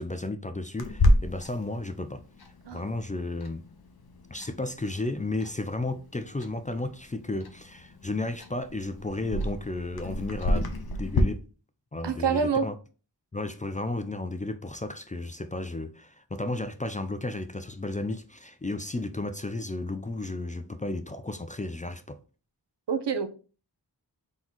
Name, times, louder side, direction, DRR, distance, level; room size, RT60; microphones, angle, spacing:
voice 1, 0.0-2.2 2.7-3.7 4.3-11.4 11.9-12.7 13.3-22.2, left 2 dB, 20° left, 0.3 m, -33 dB
Clock, 0.8-11.2, left 1 dB, 60° left, 0.8 m, -31 dB
voice 2, 12.0-12.7 22.9-23.3, right 6 dB, 80° right, 0.7 m, -26 dB
3.9 x 3.0 x 3.9 m
wide cardioid pair, 55°, 41 cm